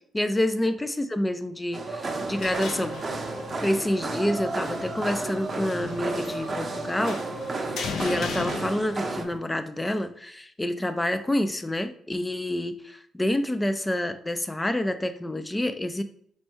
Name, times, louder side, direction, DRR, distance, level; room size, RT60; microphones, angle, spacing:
voice 1, 0.1-3.0 3.6-7.2 8.0-16.0, left 1 dB, 15° left, 11 dB, 0.4 m, -28 dB
sound 1, 1.7-9.3, right 3 dB, 35° right, 0.7 m, -32 dB
sound 2, 2.0-9.4, left 5 dB, 70° left, 0.5 m, -38 dB
4.3 x 2.2 x 4.4 m, 0.65 s
cardioid pair, 90°, 0 cm